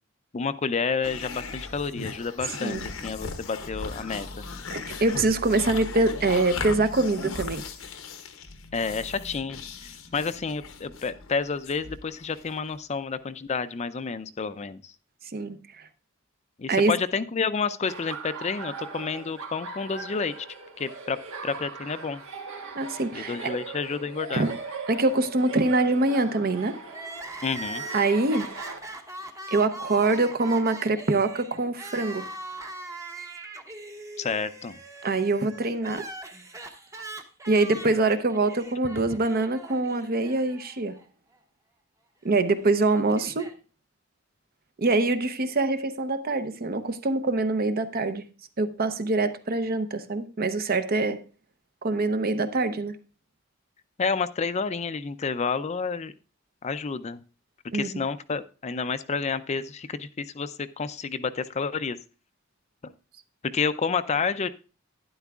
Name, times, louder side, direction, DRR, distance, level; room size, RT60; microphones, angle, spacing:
voice 1, 0.3-4.4 8.7-9.6 10.1-14.9 16.6-20.3 20.8-21.2 21.4-22.2 23.1-24.5 27.4-27.8 34.2-34.8 54.0-56.1 56.6-57.2 57.7-62.0 62.8-62.9 63.4-64.5, left 5 dB, 35° left, 0.4 m, -30 dB
sound 1, 1.0-12.8, left 4 dB, 85° left, 1.0 m, -38 dB
voice 2, 4.7-7.6 15.3-15.6 16.7-16.9 22.7-23.4 24.3-24.5 24.9-26.7 27.9-28.5 29.5-32.3 35.0-36.0 37.5-41.0 42.2-43.4 44.8-48.2 48.6-51.2 51.8-53.0 57.7-57.9, right 2 dB, 45° right, 0.7 m, -24 dB
Laughter, 17.9-28.8, right 4 dB, 80° right, 1.5 m, -39 dB
Crying sobbing, 26.9-41.0 41.3-41.4 42.4-43.5, right 2 dB, 15° right, 0.8 m, -41 dB
12.0 x 10.0 x 2.4 m
head